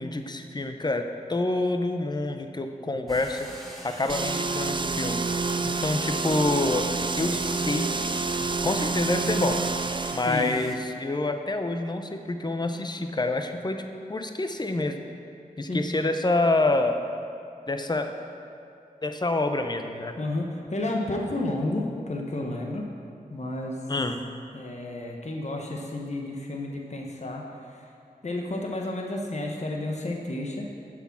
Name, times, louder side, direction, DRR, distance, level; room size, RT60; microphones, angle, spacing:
voice 1, 0.0-3.5 3.8-5.2 5.6-7.9 8.6-9.6 10.1-13.8 14.1-15.0 15.6-17.0 17.7-18.1 19.0-20.1 23.9-24.2, left 2 dB, 30° left, 6 dB, 0.7 m, -27 dB
sound 1, 3.1-10.7, equal, ahead, 2.2 m, -45 dB
sound 2, 4.1-10.3, right 3 dB, 30° right, 0.5 m, -28 dB
voice 2, 20.2-22.8 23.3-23.8 24.5-27.8 28.2-30.7, left 1 dB, 50° left, 0 dB, 1.1 m, -31 dB
7.8 x 6.1 x 7.5 m, 2.5 s
cardioid pair, 40°, 15 cm